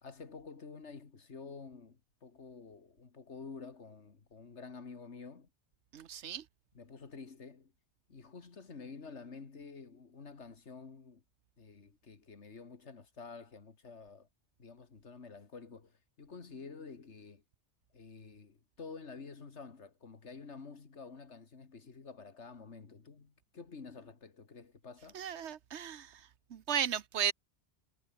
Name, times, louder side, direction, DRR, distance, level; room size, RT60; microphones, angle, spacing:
voice 1, 0.0-5.5 6.7-7.7 8.1-11.2 11.6-14.3 14.6-17.4 17.9-25.2, left 4 dB, 80° left, 2.3 m, -50 dB
voice 2, 5.9-6.4 25.1-26.2 26.5-27.3, right 9 dB, 80° right, 1.2 m, -35 dB
omnidirectional pair, 1.2 m